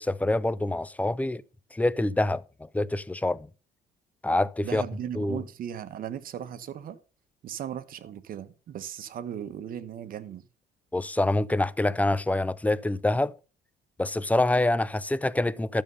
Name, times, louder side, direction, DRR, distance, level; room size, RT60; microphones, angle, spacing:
voice 1, 0.0-1.4 1.7-2.4 2.7-3.5 4.2-4.8 5.2-5.4 10.9-13.4 14.0-15.8, left 2 dB, 10° left, 0.5 m, -26 dB
voice 2, 4.6-7.0 7.4-10.5, right 9 dB, 55° right, 1.2 m, -37 dB
12.5 x 6.9 x 5.4 m
cardioid pair, 110°, 17 cm